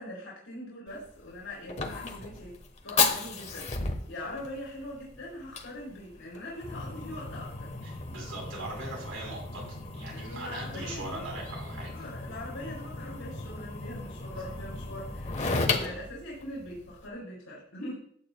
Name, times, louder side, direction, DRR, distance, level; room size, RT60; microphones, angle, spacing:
voice 1, 0.0-2.5 2.8-7.7 10.1-11.2 11.9-18.0, left 1 dB, 70° left, -5 dB, 4.1 m, -42 dB
Fire, 0.9-17.1, left 4 dB, 35° left, 1.2 m, -35 dB
voice 2, 7.8-9.6 9.9-12.0 15.9-16.0, right 2 dB, 90° right, -2 dB, 4.2 m, -40 dB
15.0 x 8.8 x 2.3 m, 0.65 s
head